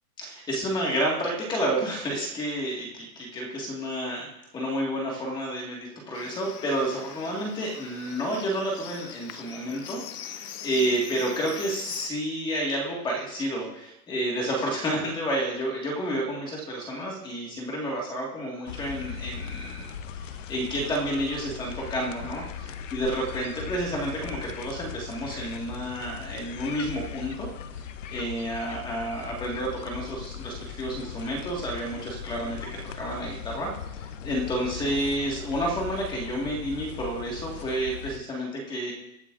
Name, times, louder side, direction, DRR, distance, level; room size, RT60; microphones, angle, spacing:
voice 1, 0.2-27.5 28.1-32.6 32.9-38.9, right 1 dB, 10° left, -1 dB, 1.9 m, -30 dB
Livestock farm animals working animals, 6.1-12.1, left 9 dB, 65° left, 1.1 m, -41 dB
Approaching the lake, 18.7-38.2, left 8 dB, 50° left, 0.8 m, -39 dB
22.0 x 8.7 x 2.6 m, 0.81 s
hypercardioid pair, 170°, 49 cm